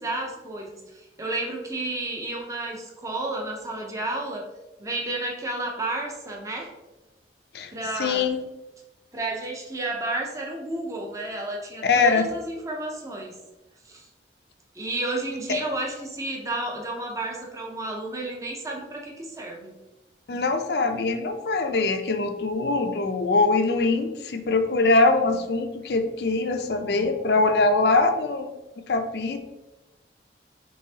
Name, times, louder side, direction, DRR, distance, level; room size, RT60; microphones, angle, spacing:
voice 1, 0.0-4.4 4.8-6.7 7.7-8.3 9.1-13.4 13.9-14.1 14.7-19.7, right 2 dB, 20° right, 0 dB, 0.6 m, -31 dB
voice 2, 7.5-8.4 11.8-12.3 20.3-28.5 28.9-29.4, left 3 dB, 65° left, 6 dB, 0.5 m, -23 dB
5.6 x 3.3 x 2.8 m, 1.0 s
head